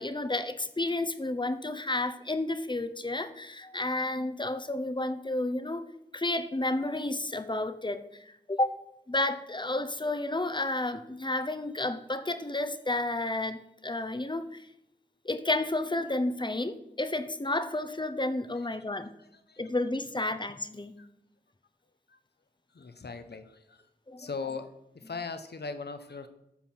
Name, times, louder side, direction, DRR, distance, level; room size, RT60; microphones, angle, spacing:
voice 1, 0.0-5.9 6.1-8.8 9.1-14.7 15.2-19.1 19.6-20.9 24.1-24.5 25.0-25.1, left 2 dB, 25° left, 11 dB, 0.9 m, -31 dB
voice 2, 22.7-23.4 23.7-23.8 24.2-24.7 25.1-26.3, left 4 dB, 65° left, 9 dB, 1.1 m, -39 dB
13.0 x 4.4 x 7.6 m, 0.84 s
cardioid pair, 45°, 18 cm